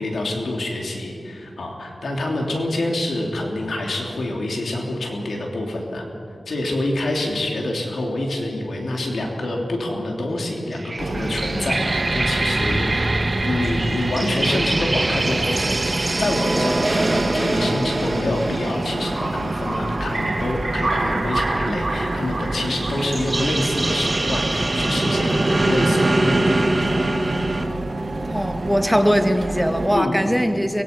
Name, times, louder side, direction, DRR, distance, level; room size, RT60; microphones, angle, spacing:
voice 1, 0.0-6.0 6.4-13.2 13.4-15.6 16.2-26.6 29.9-30.2, left 1 dB, 90° left, 0 dB, 3.4 m, -26 dB
sound 1, 10.7-27.6, right 2 dB, 40° right, 2.0 m, -24 dB
sound 2, 11.0-30.0, right 2 dB, 55° right, 1.4 m, -29 dB
voice 2, 28.3-30.8, equal, ahead, 6 dB, 1.9 m, -20 dB
23.5 x 22.5 x 5.5 m, 2.5 s
cardioid pair, 55°, 0 cm